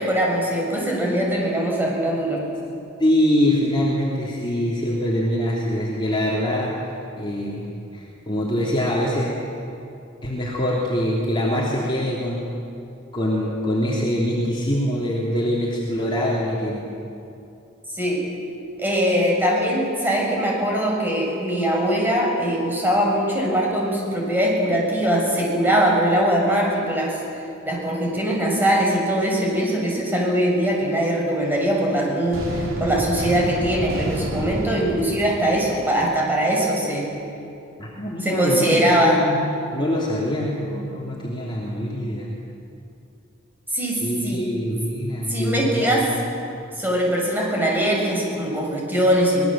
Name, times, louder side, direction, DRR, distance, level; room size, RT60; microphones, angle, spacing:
voice 1, 0.0-2.5 17.9-18.2 18.8-27.2 27.7-37.1 38.2-39.2 43.7-44.4 45.3-46.1 46.8-49.5, right 1 dB, 10° right, -2 dB, 6.6 m, -21 dB
voice 2, 3.0-6.7 7.2-7.7 7.9-9.4 10.2-12.5 13.1-16.8 37.8-39.4 39.7-42.3 44.0-46.1, equal, 25° left, -5 dB, 3.2 m, -24 dB
sound 1, 32.3-36.3, right 1 dB, 85° right, 4.5 m, -30 dB
25.0 x 20.5 x 7.6 m, 2.6 s
head